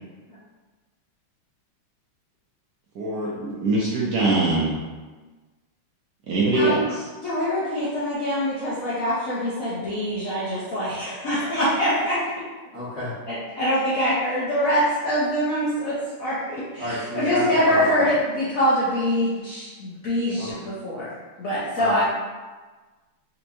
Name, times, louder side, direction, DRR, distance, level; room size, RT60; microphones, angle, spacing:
voice 1, 3.0-4.7 6.3-6.8, right 2 dB, 70° right, -6 dB, 1.0 m, -22 dB
voice 2, 7.2-12.2 13.3-22.0, equal, 60° left, -10 dB, 0.9 m, -24 dB
voice 3, 12.7-13.2 16.8-18.1 20.3-20.6 21.7-22.0, equal, 45° left, -10 dB, 1.0 m, -31 dB
4.3 x 2.9 x 2.6 m, 1.3 s
omnidirectional pair, 2.3 m